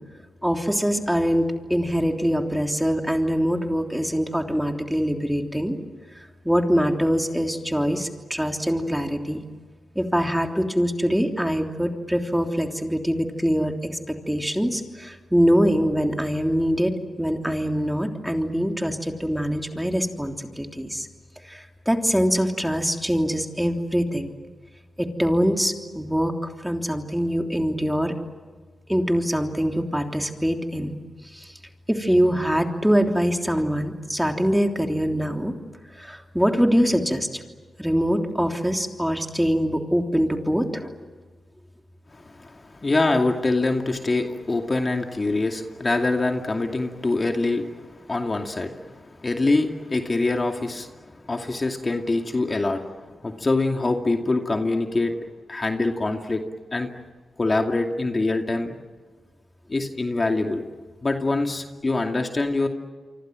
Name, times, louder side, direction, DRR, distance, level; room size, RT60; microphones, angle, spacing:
voice 1, 0.4-1.4 1.7-5.8 6.1-9.4 9.9-16.9 17.2-21.1 21.4-24.3 25.0-28.1 28.9-30.9 31.3-31.5 31.9-35.5 36.0-37.4 37.8-41.0, equal, 5° right, 4 dB, 3.3 m, -23 dB
voice 2, 42.1-51.0 51.3-55.1 55.5-56.4 56.7-56.9 57.4-58.8 59.7-60.6 61.0-62.7, left 2 dB, 35° left, 4 dB, 2.5 m, -24 dB
28.5 x 25.0 x 7.7 m, 1.4 s
supercardioid pair, 45°, 0 cm